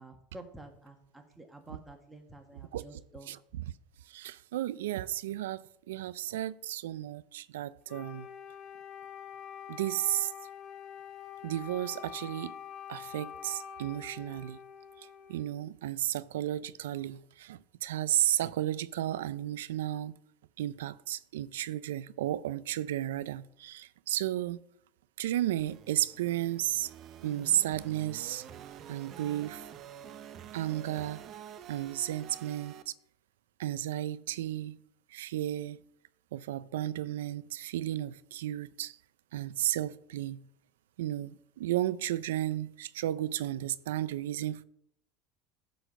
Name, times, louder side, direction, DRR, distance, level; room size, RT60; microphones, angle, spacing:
voice 1, 0.0-3.3, right 2 dB, 10° right, 1.8 m, -50 dB
voice 2, 2.7-3.7 4.1-8.3 9.7-10.3 11.4-12.5 12.9-14.6 15.0-20.2 20.6-24.6 25.2-26.9 27.2-28.4 28.9-29.6 30.5-31.2 31.7-32.9 33.6-34.8 35.1-35.8 36.3-39.0 39.3-40.4 41.0-44.6, right 13 dB, 85° right, 0.4 m, -33 dB
Wind instrument woodwind instrument, 7.9-15.6, left 8 dB, 50° left, 1.3 m, -46 dB
sound 1, 25.6-32.8, right 9 dB, 50° right, 0.8 m, -48 dB
11.5 x 4.1 x 6.6 m
supercardioid pair, 100°, 0 cm